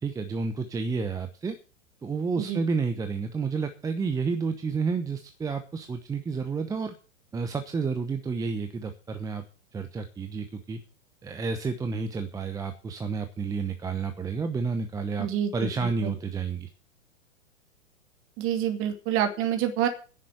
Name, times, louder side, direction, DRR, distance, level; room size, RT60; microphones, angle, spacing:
voice 1, 0.0-1.6 2.0-6.9 7.3-9.4 9.7-10.8 11.2-15.3 15.5-16.7, right 4 dB, 10° right, 7 dB, 0.9 m, -30 dB
voice 2, 15.2-16.1 18.4-19.9, right 10 dB, 30° right, 6 dB, 2.5 m, -28 dB
10.5 x 7.5 x 9.0 m, 0.37 s
figure-of-eight pair, 110°, 41 cm